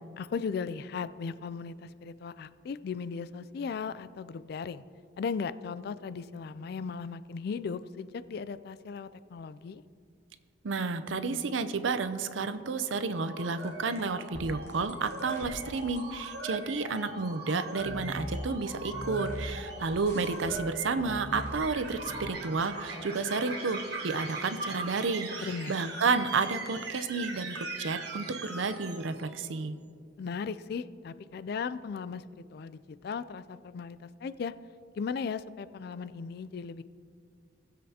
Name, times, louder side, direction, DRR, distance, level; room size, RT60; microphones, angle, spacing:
voice 1, 0.2-4.8 5.2-9.8 25.4-25.7 30.2-32.2 32.5-34.5 35.0-36.8, left 5 dB, 55° left, 15 dB, 0.3 m, -37 dB
voice 2, 10.6-29.8, right 4 dB, 85° right, 11 dB, 0.6 m, -31 dB
sound 1, 12.9-29.4, right 2 dB, 60° right, 1.6 m, -41 dB
sound 2, 13.6-16.3 17.8-22.3, left 1 dB, 15° left, 1.5 m, -41 dB
19.0 x 7.7 x 2.8 m, 2.3 s
head